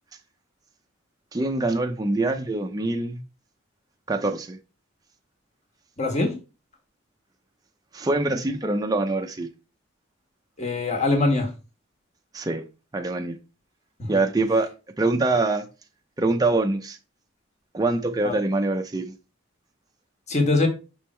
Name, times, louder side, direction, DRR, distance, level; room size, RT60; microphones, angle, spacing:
voice 1, 1.3-3.2 4.1-4.6 7.9-9.5 12.3-12.6 12.9-13.4 14.1-14.7 15.0-15.6 16.2-17.0 17.7-19.1, right 2 dB, 20° right, 0.5 m, -24 dB
voice 2, 6.0-6.4 10.6-11.5 14.0-14.1 18.2-18.3 20.3-20.7, left 2 dB, 35° left, 1.4 m, -22 dB
6.2 x 3.5 x 4.3 m
head